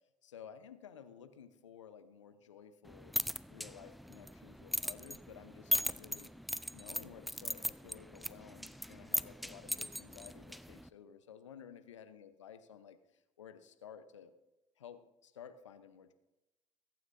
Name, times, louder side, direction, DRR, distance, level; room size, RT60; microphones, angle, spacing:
voice 1, 0.2-3.2 3.5-6.3 6.7-14.3 14.8-16.1, left 8 dB, 85° left, 10 dB, 0.8 m, -54 dB
sound 1, 2.9-10.9, equal, ahead, 0.5 m, -39 dB
22.0 x 9.3 x 2.6 m, 1.0 s
figure-of-eight pair, 55°, 15 cm